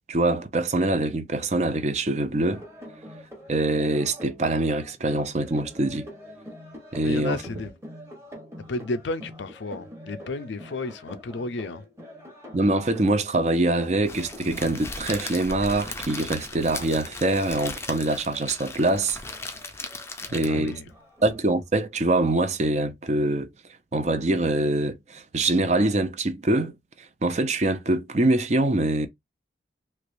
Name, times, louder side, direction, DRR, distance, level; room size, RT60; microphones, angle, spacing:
voice 1, 0.1-2.6 3.5-6.1 6.9-7.6 12.5-19.2 20.3-20.8 21.2-23.5 23.9-26.7 27.2-29.1, right 2 dB, 40° right, 0.5 m, -24 dB
sound 1, 2.5-22.2, equal, 15° right, 1.0 m, -46 dB
voice 2, 7.0-7.7 8.7-11.8 20.4-20.9, left 2 dB, 80° left, 0.5 m, -32 dB
Crackle, 14.1-20.8, left 3 dB, 15° left, 0.5 m, -37 dB
3.2 x 3.0 x 2.5 m
head